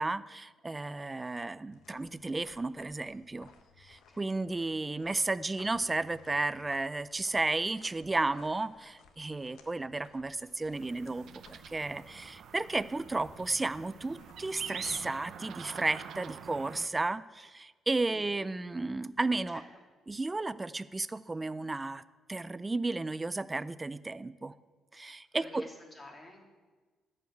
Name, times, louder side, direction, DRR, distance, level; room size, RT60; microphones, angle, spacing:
voice 1, 0.0-3.5 3.8-19.6 20.1-22.0 22.3-24.5 24.9-25.6, right 2 dB, 20° right, 16 dB, 0.4 m, -33 dB
sound 1, 1.7-15.3, left 6 dB, 85° left, 1.1 m, -59 dB
sound 2, 10.7-16.9, right 8 dB, 70° right, 0.6 m, -46 dB
voice 2, 25.3-26.4, left 2 dB, 20° left, 0 dB, 2.6 m, -49 dB
11.0 x 5.5 x 7.7 m, 1.3 s
cardioid pair, 90°, 0 cm